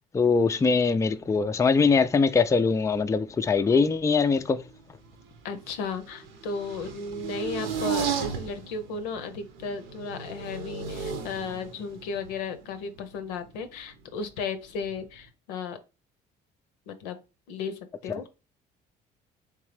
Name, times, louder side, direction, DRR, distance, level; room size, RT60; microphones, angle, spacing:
voice 1, 0.1-4.6, left 4 dB, 15° left, 0.4 m, -22 dB
sound 1, 1.3-2.3 2.6-3.5 3.9-14.2 14.8-15.3, right 6 dB, 65° right, 0.8 m, -36 dB
voice 2, 5.4-15.8 16.9-17.2 17.5-18.3, left 4 dB, 80° left, 0.7 m, -35 dB
3.4 x 3.3 x 3.2 m
hypercardioid pair, 60°, 21 cm